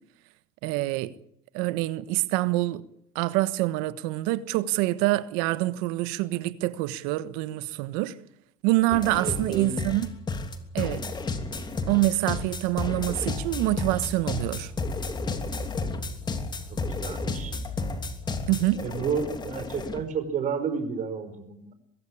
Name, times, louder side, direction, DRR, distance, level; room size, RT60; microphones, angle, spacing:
voice 1, 0.6-1.1 1.5-2.8 3.1-8.1 8.6-10.1 10.7-11.0 11.9-14.7 18.5-18.8, right 17 dB, 85° right, 1.4 m, -26 dB
sound 1, 8.9-20.0, left 3 dB, 25° left, 3.0 m, -32 dB
voice 2, 9.1-9.8 16.7-17.5 18.5-21.7, right 6 dB, 45° right, 5.1 m, -31 dB
23.5 x 16.0 x 8.6 m
supercardioid pair, 110°, 18 cm